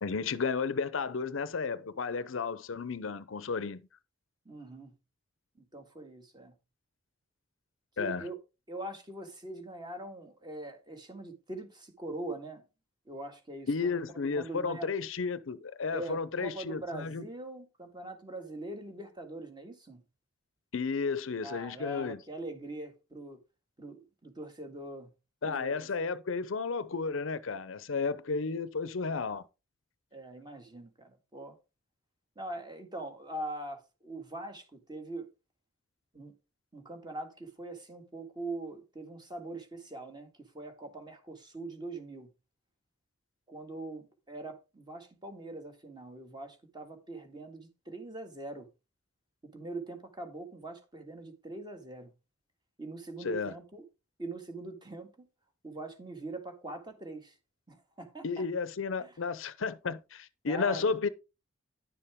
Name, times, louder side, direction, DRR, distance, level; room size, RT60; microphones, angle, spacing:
voice 1, 0.0-3.8 8.0-8.3 13.7-17.2 20.7-22.2 25.4-29.5 53.2-53.5 58.2-61.1, left 4 dB, 70° left, 0.6 m, -33 dB
voice 2, 4.5-4.9 5.6-6.5 8.0-8.4 8.7-12.6 13.1-14.0 14.3-14.9 15.9-20.0 21.4-23.4 23.8-25.1 25.4-26.1 30.1-31.6 32.4-35.3 36.1-36.3 36.7-42.3 43.5-48.7 49.5-52.1 52.8-53.9 54.2-55.1 55.6-57.4 57.7-58.5 59.0-59.1 60.5-61.0, right 2 dB, 20° right, 1.8 m, -42 dB
10.5 x 6.8 x 3.5 m
head